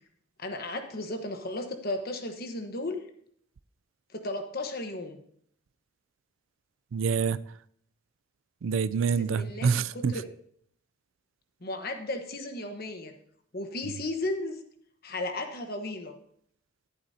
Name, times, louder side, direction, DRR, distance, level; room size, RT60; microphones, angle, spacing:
voice 1, 0.4-3.0 4.1-5.2 9.2-10.2 11.6-13.1 13.5-14.6 15.0-16.2, left 2 dB, 45° left, 1.2 m, -35 dB
voice 2, 6.9-7.4 8.6-10.2, right 6 dB, 70° right, 0.4 m, -26 dB
13.0 x 11.0 x 2.8 m
head